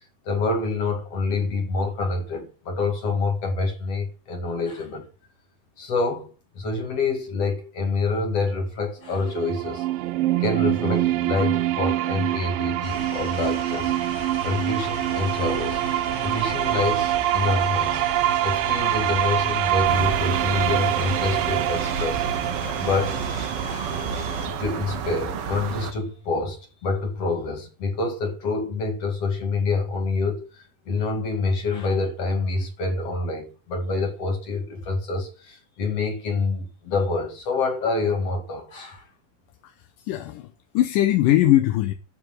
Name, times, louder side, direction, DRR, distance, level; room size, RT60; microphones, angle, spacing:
voice 1, 0.2-5.1 5.8-9.9 10.4-14.0 14.4-15.8 16.2-18.0 18.4-22.2 22.8-23.2 23.6-24.0 24.4-39.0, left 3 dB, 50° left, 3.1 m, -27 dB
sound 1, 9.1-25.0, right 14 dB, 85° right, 2.4 m, -25 dB
sound 2, 12.8-24.5, right 1 dB, 30° right, 1.9 m, -34 dB
sound 3, 19.8-25.9, right 7 dB, 65° right, 1.5 m, -31 dB
voice 2, 39.6-41.9, left 14 dB, 80° left, 2.4 m, -21 dB
12.0 x 5.0 x 7.8 m
omnidirectional pair, 4.0 m